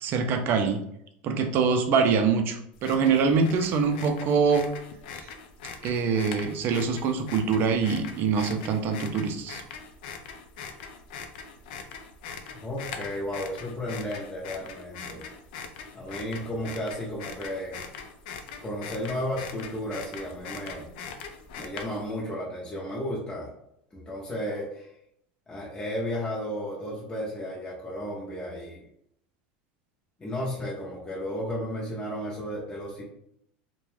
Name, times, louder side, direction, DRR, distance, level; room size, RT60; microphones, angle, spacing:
voice 1, 0.0-0.8 1.2-4.7 5.1-5.3 5.8-9.6, right 5 dB, 45° right, 5 dB, 0.4 m, -24 dB
sound 1, 2.7-22.2, left 6 dB, 80° left, 0.4 m, -42 dB
voice 2, 12.6-15.2 15.9-17.8 18.6-20.9 21.6-23.5 23.9-24.9 25.5-28.8 30.2-33.0, equal, 20° left, -5 dB, 0.6 m, -33 dB
2.4 x 2.2 x 3.2 m, 0.73 s
supercardioid pair, 125°, 5 cm